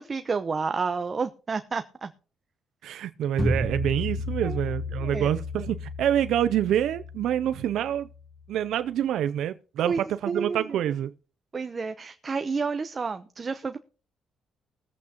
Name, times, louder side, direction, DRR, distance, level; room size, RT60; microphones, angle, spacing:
voice 1, 0.0-2.1 4.4-4.6 5.0-5.3 9.9-10.6 11.5-13.8, right 5 dB, 35° right, 0.7 m, -30 dB
voice 2, 2.8-8.1 8.5-11.1, right 10 dB, 75° right, 0.4 m, -26 dB
sound 1, 3.4-8.4, left 1 dB, 25° left, 2.9 m, -32 dB
20.5 x 8.3 x 2.9 m
cardioid pair, 90°, 0 cm